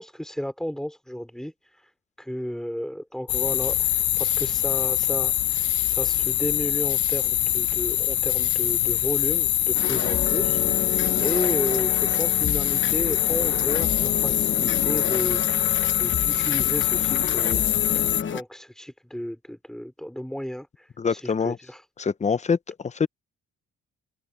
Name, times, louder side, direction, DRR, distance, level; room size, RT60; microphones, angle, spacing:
voice 1, 0.0-1.9 2.2-17.6 17.9-21.9, equal, ahead, 3.9 m, -33 dB
sound 1, 3.3-18.2, left 13 dB, 65° left, 0.7 m, -24 dB
sound 2, 9.7-18.4, left 7 dB, 40° left, 1.1 m, -31 dB
voice 2, 21.0-21.6 22.0-23.1, left 5 dB, 25° left, 0.6 m, -25 dB
cardioid pair, 125°, 30 cm